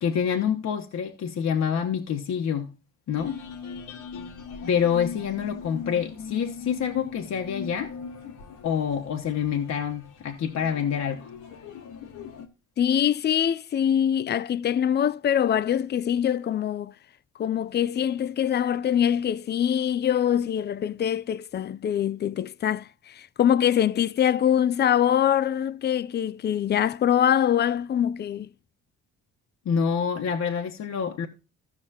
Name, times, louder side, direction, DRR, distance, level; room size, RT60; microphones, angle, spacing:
voice 1, 0.0-2.7 3.1-3.4 4.7-7.9 8.6-11.3 29.6-31.3, left 7 dB, 60° left, 1.1 m, -27 dB
sound 1, 3.2-12.5, left 5 dB, 85° left, 1.5 m, -40 dB
voice 2, 12.8-16.9 17.4-28.5, left 9 dB, 35° left, 0.4 m, -24 dB
15.5 x 6.0 x 2.8 m
cardioid pair, 90°, 30 cm